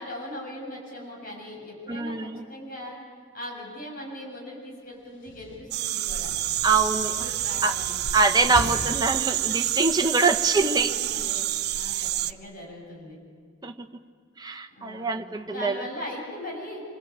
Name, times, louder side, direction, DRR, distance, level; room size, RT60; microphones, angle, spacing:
voice 1, 0.0-3.0 3.3-6.3 7.0-7.9 8.5-8.8 10.2-10.3 10.6-11.4 11.7-13.2 14.8-15.2 15.5-16.8, left 1 dB, 45° left, -2 dB, 7.6 m, -39 dB
voice 2, 1.9-2.4 6.6-7.1 7.6-7.7 8.1-10.9 12.0-12.1 13.6-13.9 14.4-15.9, right 4 dB, 20° right, 5 dB, 1.2 m, -24 dB
Slam, 5.1-9.8, left 1 dB, 75° left, 1.5 m, -40 dB
sound 1, 5.7-12.3, right 14 dB, 55° right, 0.7 m, -28 dB
27.0 x 25.0 x 8.8 m, 2.1 s
head